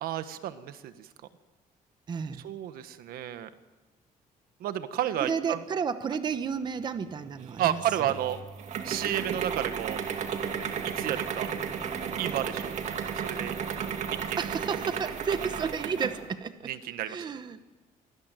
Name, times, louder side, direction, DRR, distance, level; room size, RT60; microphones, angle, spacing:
voice 1, 0.0-1.1 2.4-3.5 4.6-5.6 7.6-8.4 8.8-10.0 10.8-11.5 12.2-12.7 13.1-13.5 14.3-14.4 16.6-17.2, right 11 dB, 85° right, 11 dB, 1.5 m, -31 dB
voice 2, 2.1-2.4 5.2-8.1 14.4-16.7 17.1-17.6, right 6 dB, 30° right, 11 dB, 1.0 m, -32 dB
sound 1, 7.4-16.3, right 7 dB, 50° right, 2.1 m, -34 dB
25.0 x 18.5 x 9.2 m, 1.2 s
cardioid pair, 180°, 15 cm